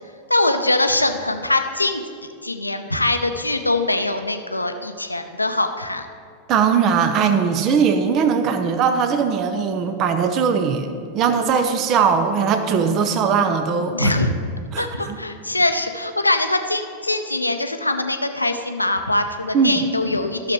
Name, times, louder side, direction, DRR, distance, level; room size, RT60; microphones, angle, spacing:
voice 1, 0.3-2.0 2.4-6.1 13.9-14.4 14.8-20.5, left 2 dB, 85° left, 7 dB, 0.6 m, -22 dB
voice 2, 6.5-14.1 14.7-15.2 19.5-19.8, right 6 dB, 35° right, 8 dB, 0.7 m, -20 dB
13.5 x 6.8 x 3.1 m, 2.3 s
figure-of-eight pair, 90°, 0 cm